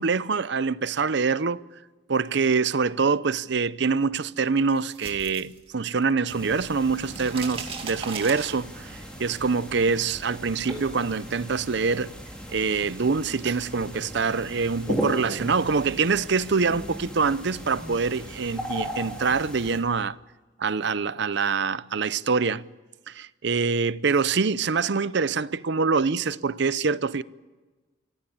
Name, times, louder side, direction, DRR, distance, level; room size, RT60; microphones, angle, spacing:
voice 1, 0.0-1.6 2.1-12.1 12.5-20.2 20.6-22.6 23.1-27.2, right 5 dB, 60° right, 0.6 m, -25 dB
sound 1, 4.6-6.3 6.5-9.0, right 5 dB, 30° right, 2.4 m, -38 dB
sound 2, 6.3-19.8, equal, 5° left, 4.1 m, -37 dB
25.0 x 16.0 x 8.7 m
head